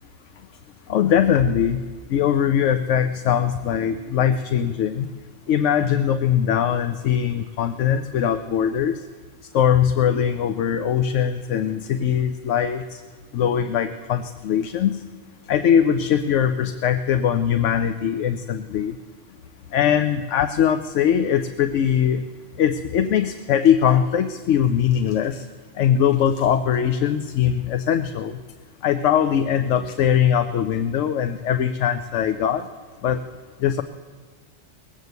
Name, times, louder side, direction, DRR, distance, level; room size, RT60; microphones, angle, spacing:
voice 1, 0.9-1.8 2.1-5.1 5.5-9.0 9.5-13.0 13.3-15.0 15.5-18.9 19.7-22.2 22.6-25.5 25.8-28.4 28.8-32.7 33.0-33.2 33.6-33.8, left 9 dB, 85° left, 9 dB, 1.0 m, -21 dB
19.0 x 8.2 x 8.0 m, 1.4 s
omnidirectional pair, 1.2 m